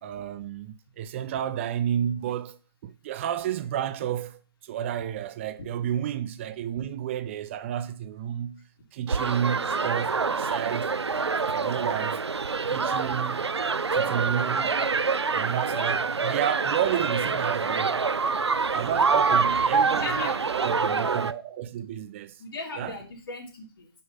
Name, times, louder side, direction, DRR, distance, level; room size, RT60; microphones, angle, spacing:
voice 1, 0.0-2.6 2.8-8.6 8.9-10.9 11.4-12.2 12.7-13.4 13.9-14.8 15.2-18.0 18.7-22.4 22.8-22.9, right 10 dB, 30° right, 0.5 m, -31 dB
sound 1, 9.1-21.3, right 4 dB, 85° right, 0.6 m, -26 dB
voice 2, 19.8-20.7 22.4-23.9, left 3 dB, 55° left, 3.4 m, -38 dB
7.8 x 5.5 x 5.6 m
figure-of-eight pair, 140°, 14 cm